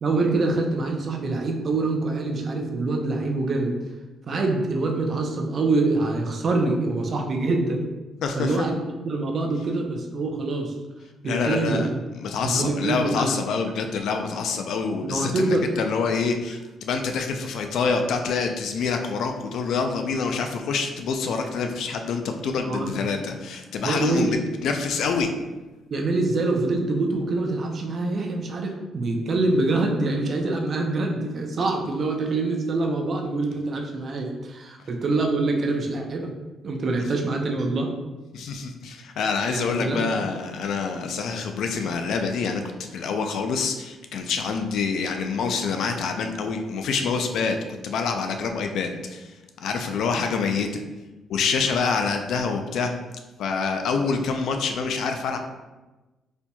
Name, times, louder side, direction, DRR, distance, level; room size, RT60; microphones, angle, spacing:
voice 1, 0.0-3.7 4.3-7.9 8.3-10.7 11.2-12.0 12.4-13.4 15.0-15.7 22.6-23.0 23.8-24.4 25.9-36.3 36.6-37.9 39.5-40.1, right 2 dB, 50° right, 2 dB, 0.6 m, -25 dB
voice 2, 8.2-8.7 11.2-11.9 12.2-24.4 24.6-25.3 38.3-42.6 42.9-47.6 47.8-49.3 49.6-50.8 51.3-52.9 53.4-55.4, left 5 dB, 75° left, 5 dB, 0.4 m, -26 dB
4.2 x 2.8 x 2.3 m, 1.1 s
cardioid pair, 90°, 0 cm